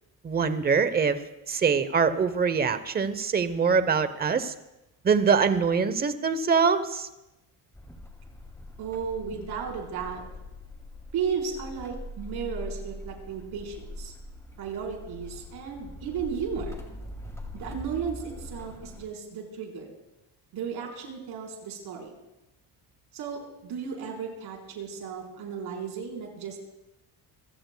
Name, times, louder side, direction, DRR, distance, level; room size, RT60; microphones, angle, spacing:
voice 1, 0.2-1.2 1.5-4.5 5.0-7.1, right 5 dB, 25° right, 12 dB, 0.8 m, -24 dB
sound 1, 7.7-19.0, left 1 dB, 5° left, 2.3 m, -42 dB
voice 2, 8.8-10.2 11.1-14.1 14.6-16.8 17.5-19.9 20.5-22.1 23.1-26.6, right 6 dB, 70° right, 0 dB, 4.3 m, -34 dB
26.5 x 16.5 x 2.3 m, 0.94 s
cardioid pair, 145°, 41 cm